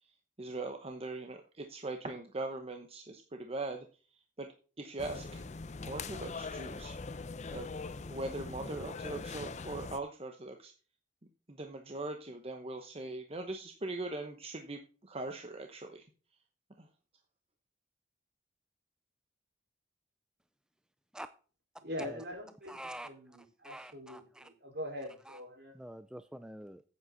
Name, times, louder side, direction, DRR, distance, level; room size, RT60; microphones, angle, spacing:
voice 1, 0.0-3.9 4.4-5.4 5.8-6.9 7.5-7.7 8.1-10.7 11.5-16.0 16.8-16.9, right 2 dB, 35° right, 0.9 m, -41 dB
sound 1, 5.0-10.0, left 3 dB, 40° left, 0.6 m, -42 dB
voice 2, 21.8-22.8 23.0-25.7, left 1 dB, 65° right, 4.6 m, -43 dB
voice 3, 22.7-23.1 23.6-24.5 25.3-25.4 25.8-26.8, right 1 dB, 5° right, 0.4 m, -46 dB
9.2 x 8.7 x 4.0 m
head